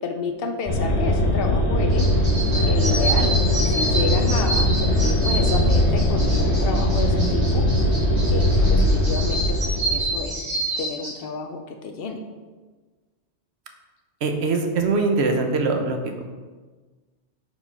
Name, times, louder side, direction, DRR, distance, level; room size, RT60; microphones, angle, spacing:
voice 1, 0.0-2.1 2.6-7.7 8.3-10.5 10.8-12.2, left 4 dB, 65° left, 5 dB, 0.7 m, -30 dB
sound 1, 0.7-10.3, equal, 35° left, 1.2 m, -20 dB
sound 2, 1.9-11.1, right 1 dB, 30° right, 1.7 m, -29 dB
sound 3, 4.0-4.2 4.6-4.8 5.3-6.1 7.0-7.7 8.2-9.1, equal, 10° right, 0.7 m, -32 dB
voice 2, 14.2-16.2, right 3 dB, 75° right, 5 dB, 1.0 m, -22 dB
4.9 x 3.8 x 5.4 m, 1.3 s
omnidirectional pair, 1.2 m